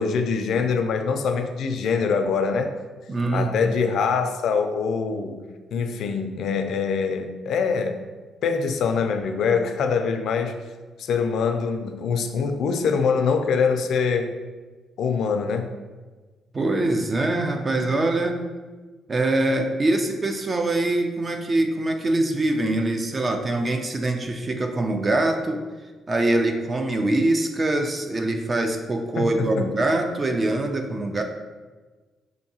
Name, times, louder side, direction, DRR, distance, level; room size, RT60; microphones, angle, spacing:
voice 1, 0.0-2.7 3.3-5.4 5.7-8.0 8.4-10.5 11.0-14.3 15.0-15.7 29.2-29.7, left 5 dB, 70° left, 6 dB, 0.4 m, -24 dB
voice 2, 3.1-3.7 16.5-18.4 19.1-25.6 26.1-31.2, right 2 dB, 35° right, 5 dB, 0.4 m, -23 dB
4.6 x 2.6 x 2.8 m, 1.3 s
cardioid pair, 90°, 0 cm